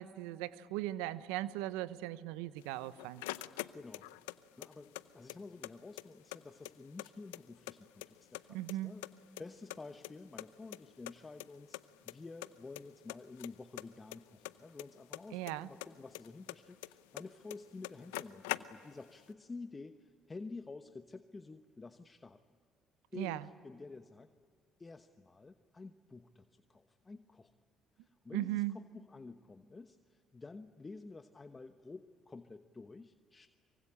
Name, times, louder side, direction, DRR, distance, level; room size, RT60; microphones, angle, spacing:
voice 1, 0.0-3.2 8.5-8.9 15.3-15.7 23.2-23.5 28.3-28.8, right 15 dB, 85° right, 16 dB, 0.8 m, -38 dB
sound 1, 2.6-4.4 4.6-5.7 6.0-6.1 6.3-7.7 8.0-8.8 9.0-10.5 10.7-10.8 11.1-11.2 11.4-11.5 11.7-12.1 12.4-12.8 13.1-15.5 15.8-17.2 17.5-17.6 17.8-19.1, left 19 dB, 90° left, 0.6 m, -43 dB
voice 2, 3.7-4.1 4.6-9.1 9.4-22.4 23.1-24.3 24.8-27.5 28.0-33.5, left 3 dB, 25° left, 9 dB, 1.1 m, -50 dB
24.5 x 24.0 x 10.0 m, 2.1 s
hypercardioid pair, 60°, 0 cm